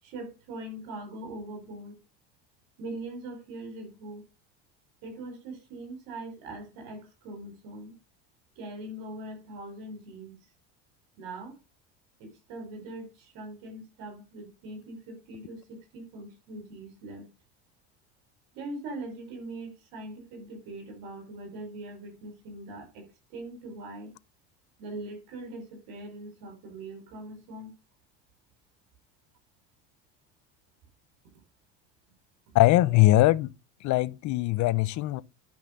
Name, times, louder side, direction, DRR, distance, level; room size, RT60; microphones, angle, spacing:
voice 1, 0.0-2.0 2.8-4.3 5.0-7.9 8.6-10.3 11.2-11.6 12.2-17.3 18.5-24.1 24.8-27.7, right 2 dB, 75° right, 5.4 m, -41 dB
voice 2, 32.5-33.5 33.8-35.2, left 16 dB, 55° left, 0.8 m, -21 dB
10.5 x 5.8 x 5.4 m
supercardioid pair, 115°, 36 cm